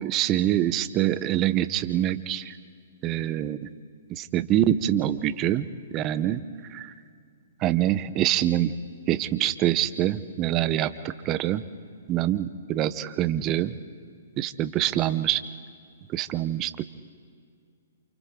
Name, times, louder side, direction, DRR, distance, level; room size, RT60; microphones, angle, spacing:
voice 1, 0.0-2.6 3.0-3.7 4.1-6.4 6.7-6.9 7.6-8.7 9.1-11.6 12.1-13.8 14.4-15.4 16.1-16.8, right 12 dB, 30° right, 13 dB, 0.9 m, -25 dB
29.0 x 28.0 x 3.9 m, 2.3 s
hypercardioid pair, 135°, 0 cm